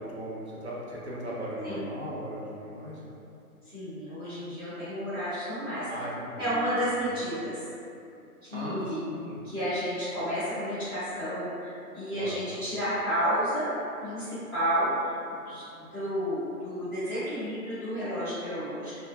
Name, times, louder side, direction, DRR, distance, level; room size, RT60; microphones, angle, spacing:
voice 1, 0.0-3.0 5.9-6.7 7.1-7.2 8.5-9.4 12.1-12.5, equal, 45° right, -6 dB, 0.4 m, -37 dB
voice 2, 3.7-5.9 6.4-7.6 8.4-9.0 9.4-13.7 14.0-15.1 15.5-18.9, equal, 15° right, -19 dB, 0.7 m, -31 dB
2.1 x 2.0 x 2.8 m, 2.7 s
figure-of-eight pair, 150°, 46 cm